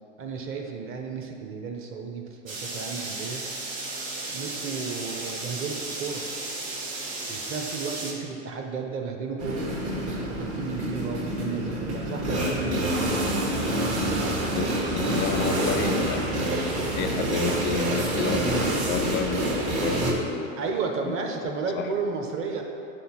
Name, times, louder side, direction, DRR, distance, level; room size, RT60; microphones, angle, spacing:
voice 1, 0.2-3.4 4.2-6.3 7.3-9.7 10.3-13.0 20.5-22.6, right 5 dB, 35° right, 3 dB, 0.9 m, -33 dB
sound 1, 2.5-8.1, right 2 dB, 85° right, 1.4 m, -34 dB
sound 2, 9.4-20.1, right 1 dB, 50° right, 1.7 m, -27 dB
voice 2, 14.5-16.3 17.0-20.5 21.0-21.1 21.7-21.9, left 9 dB, 30° left, 8 dB, 0.4 m, -31 dB
9.1 x 3.8 x 4.4 m, 2.6 s
hypercardioid pair, 100°, 38 cm